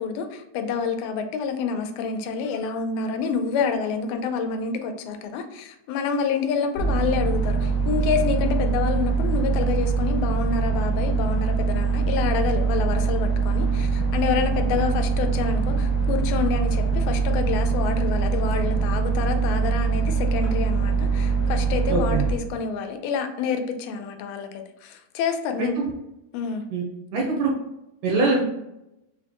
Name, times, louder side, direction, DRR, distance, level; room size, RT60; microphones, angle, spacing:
voice 1, 0.0-25.8 26.3-26.6, left 6 dB, 85° left, 5 dB, 2.4 m, -28 dB
sound 1, 6.8-22.3, right 5 dB, 65° left, 1.3 m, -23 dB
voice 2, 21.9-22.2 25.6-25.9 26.7-26.8 27.1-27.5 28.0-28.4, right 3 dB, 80° right, -2 dB, 1.8 m, -23 dB
6.0 x 2.1 x 2.9 m, 0.88 s
omnidirectional pair, 4.1 m